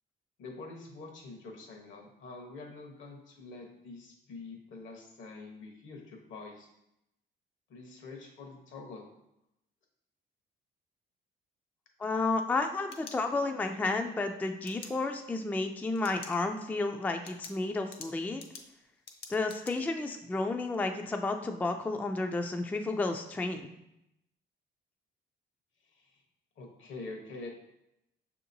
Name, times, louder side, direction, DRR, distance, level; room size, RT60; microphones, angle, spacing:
voice 1, 0.4-6.7 7.7-9.1 25.8-26.2 26.6-27.5, left 3 dB, 75° left, 1 dB, 1.0 m, -46 dB
voice 2, 12.0-18.4 19.3-23.7, left 3 dB, 10° left, 5 dB, 0.3 m, -32 dB
sound 1, 12.6-13.7 14.6-14.9 15.9-16.4 16.7-16.8 17.2-19.7, left 5 dB, 55° left, 0.6 m, -48 dB
6.3 x 2.9 x 2.6 m, 0.85 s
cardioid pair, 90°, 20 cm